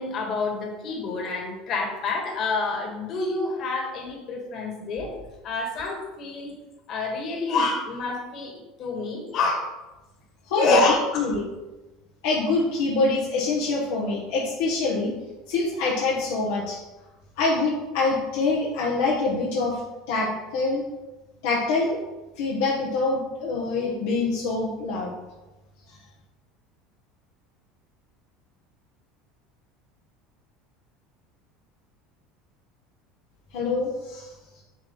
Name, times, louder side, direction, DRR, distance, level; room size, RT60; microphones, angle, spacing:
voice 1, 0.0-5.1 5.4-6.5 6.9-9.6 10.6-11.0, left 3 dB, 50° left, 1 dB, 1.9 m, -27 dB
voice 2, 10.5-11.5 12.2-15.2 15.5-16.8 17.4-19.8 20.1-20.9 21.4-22.0 22.4-25.1 25.9-26.0 33.5-34.3, left 3 dB, 75° left, -3 dB, 1.3 m, -25 dB
7.5 x 3.0 x 5.5 m, 1.1 s
hypercardioid pair, 80°, 0 cm